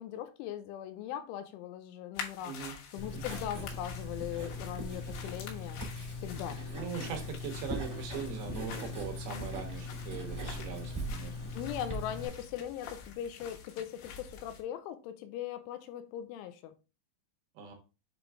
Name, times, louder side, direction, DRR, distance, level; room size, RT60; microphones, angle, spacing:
voice 1, 0.0-5.8 6.2-6.6 11.5-16.7, left 11 dB, 90° left, 3.1 m, -40 dB
sound 1, 2.2-14.6, left 6 dB, 75° left, 3.3 m, -48 dB
voice 2, 2.4-2.7 3.1-3.2 6.7-11.3 17.6-17.8, right 7 dB, 70° right, 2.5 m, -40 dB
Writing, 3.0-12.3, left 1 dB, 20° right, 0.6 m, -40 dB
7.4 x 3.8 x 3.4 m
omnidirectional pair, 5.4 m